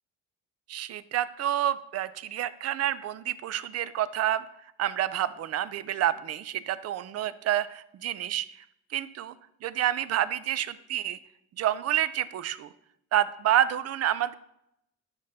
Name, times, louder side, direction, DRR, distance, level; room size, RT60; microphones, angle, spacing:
voice 1, 0.7-4.4 4.8-8.5 8.9-9.3 9.6-11.2 11.6-12.7 13.1-14.3, right 11 dB, 55° right, 15 dB, 0.4 m, -28 dB
9.6 x 5.1 x 2.7 m, 0.79 s
cardioid pair, 90°, 30 cm